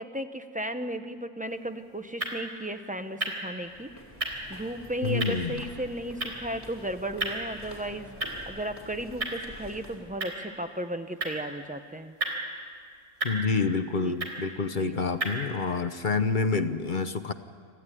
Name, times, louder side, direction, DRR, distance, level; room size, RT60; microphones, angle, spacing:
voice 1, 0.0-3.9 4.5-12.1 14.0-14.2 14.8-15.0, right 1 dB, 5° right, 8 dB, 0.9 m, -35 dB
sound 1, 1.4-15.4, right 2 dB, 70° right, 4.4 m, -38 dB
sound 2, 3.6-10.2, left 1 dB, 20° left, 3.5 m, -47 dB
voice 2, 5.0-5.6 13.2-17.3, left 4 dB, 45° left, 9 dB, 0.9 m, -28 dB
26.0 x 15.5 x 10.0 m, 2.2 s
omnidirectional pair, 1.2 m